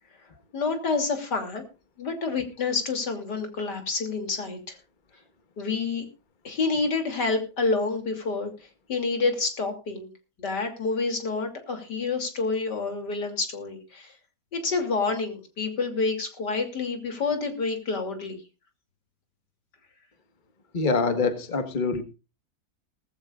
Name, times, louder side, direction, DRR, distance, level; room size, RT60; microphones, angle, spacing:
voice 1, 0.5-1.6 2.0-4.8 5.6-6.0 6.4-8.5 8.9-10.1 10.4-14.1 14.5-18.4, left 4 dB, 85° left, 6 dB, 3.5 m, -28 dB
voice 2, 20.7-22.0, left 4 dB, 30° left, 9 dB, 1.7 m, -25 dB
19.0 x 15.0 x 2.5 m, 0.31 s
omnidirectional pair, 1.8 m